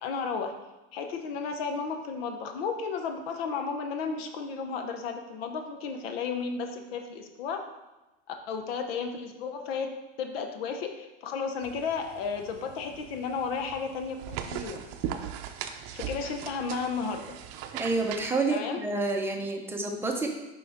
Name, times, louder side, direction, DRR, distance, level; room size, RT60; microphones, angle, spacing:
voice 1, 0.0-0.5 0.9-7.6 8.3-9.9 10.2-14.8 15.9-17.4 18.5-18.8, left 5 dB, 80° left, 6 dB, 0.9 m, -33 dB
sound 1, 11.6-18.3, right 9 dB, 50° right, 0.6 m, -39 dB
voice 2, 17.7-20.3, right 3 dB, 10° right, 1 dB, 0.7 m, -29 dB
6.3 x 5.3 x 3.6 m, 1.0 s
supercardioid pair, 135°, 29 cm